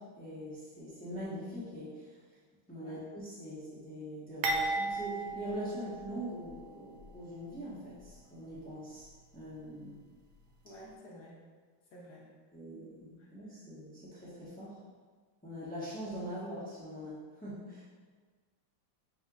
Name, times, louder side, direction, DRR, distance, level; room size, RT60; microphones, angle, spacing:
voice 1, 0.0-2.2 2.7-9.1 9.3-10.0 12.5-14.8 15.4-17.8, equal, 10° left, -10 dB, 0.5 m, -42 dB
sound 1, 4.4-6.6 7.0-7.1 8.0-8.1, right 2 dB, 75° right, 1.3 m, -35 dB
voice 2, 10.6-11.4 11.9-12.3 13.2-13.3, equal, 60° left, -4 dB, 1.3 m, -52 dB
7.4 x 2.9 x 2.4 m, 1.5 s
omnidirectional pair, 2.3 m